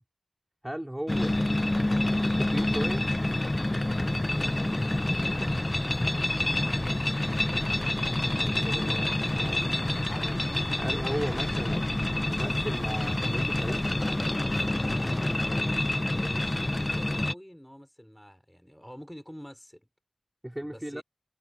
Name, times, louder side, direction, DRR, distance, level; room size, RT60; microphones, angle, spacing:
voice 1, 0.6-1.5 1.8-3.1 8.1-9.7 10.8-11.9 12.2-13.9 20.4-21.0, right 1 dB, 10° right, 3.6 m, -37 dB
sound 1, 1.1-17.3, left 1 dB, 30° left, 0.7 m, -27 dB
voice 2, 4.2-7.6 8.5-9.1 15.0-19.9 20.6-21.0, equal, 5° left, 5.5 m, -48 dB
sound 2, 6.4-15.1, right 2 dB, 50° right, 3.8 m, -48 dB
wide cardioid pair, 50°, 0 cm